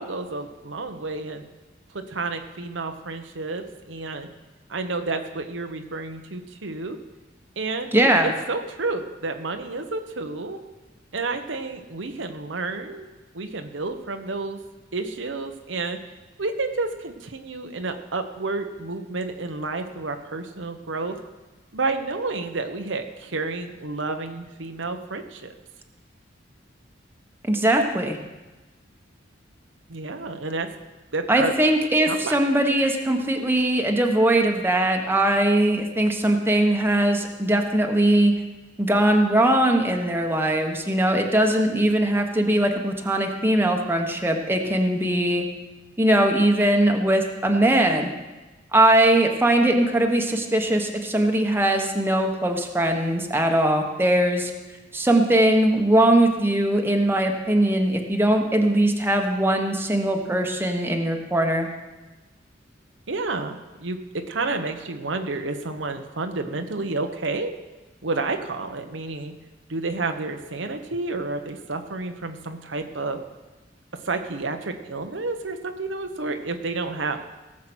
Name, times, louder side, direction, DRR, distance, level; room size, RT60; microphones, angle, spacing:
voice 1, 0.0-1.4 1.9-4.3 4.7-7.0 7.6-10.6 11.1-13.1 13.3-14.6 14.9-16.0 16.4-21.2 21.7-25.5 29.9-30.7 31.1-31.5 32.1-32.4 63.1-67.5 68.0-69.3 69.7-73.2 74.0-77.2, right 3 dB, 85° right, 6 dB, 1.1 m, -30 dB
voice 2, 7.9-8.3 27.4-28.2 31.3-38.3 38.8-45.4 46.0-48.1 48.7-54.5 54.9-61.7, right 1 dB, 10° right, 3 dB, 1.3 m, -20 dB
17.5 x 7.5 x 6.2 m, 1.2 s
head